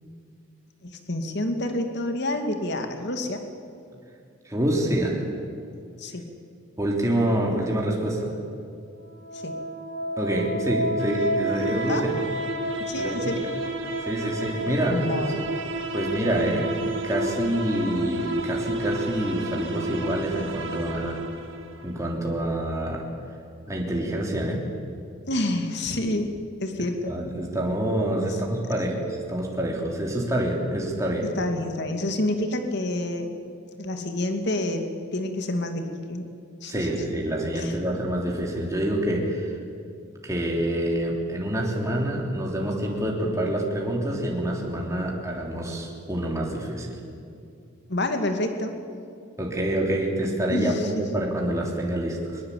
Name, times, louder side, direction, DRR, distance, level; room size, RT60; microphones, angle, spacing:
voice 1, 0.8-3.4 6.0-6.2 9.3-9.5 11.9-12.0 12.8-13.4 14.9-15.4 25.3-26.3 26.6-27.2 28.2-28.4 28.8-28.9 31.4-33.3 33.8-34.8 35.1-36.3 36.6-37.0 37.5-37.7 47.9-48.7 50.5-51.0, left 1 dB, 55° left, 6 dB, 2.4 m, -28 dB
voice 2, 4.4-5.2 6.8-8.3 10.2-12.1 12.9-13.3 14.0-15.2 15.9-16.7 17.0-21.2 21.8-23.0 23.7-24.6 27.1-31.3 36.7-39.6 40.2-47.0 49.4-52.4, right 1 dB, 15° right, -1 dB, 3.4 m, -27 dB
sound 1, 9.0-22.0, right 1 dB, 65° right, 1.9 m, -30 dB
22.5 x 21.5 x 8.5 m, 2.4 s
head